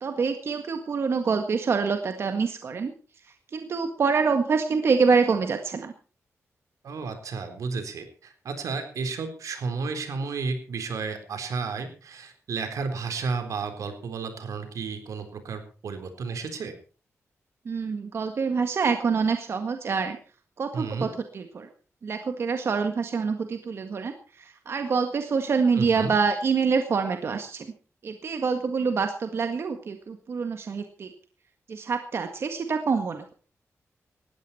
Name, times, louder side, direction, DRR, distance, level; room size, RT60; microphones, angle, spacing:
voice 1, 0.0-2.9 3.5-5.9 17.7-20.2 20.6-21.1 21.3-21.7 22.0-27.7 28.0-31.1 31.7-33.2, right 5 dB, 50° right, 6 dB, 1.8 m, -26 dB
voice 2, 6.8-16.7 20.7-21.1 25.8-26.1, right 4 dB, 90° right, 7 dB, 4.1 m, -32 dB
19.0 x 14.5 x 4.4 m, 0.37 s
wide cardioid pair, 170°, 5 cm